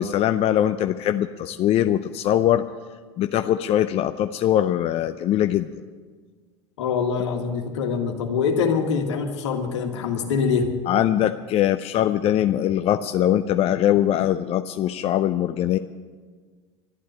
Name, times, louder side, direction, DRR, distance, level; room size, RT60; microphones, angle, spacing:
voice 1, 0.0-2.6 3.2-5.7 10.9-15.8, left 11 dB, 40° left, 10 dB, 0.5 m, -22 dB
voice 2, 6.8-10.7, left 5 dB, 75° left, 4 dB, 1.8 m, -24 dB
12.0 x 11.0 x 8.8 m, 1.5 s
hypercardioid pair, 75°, 15 cm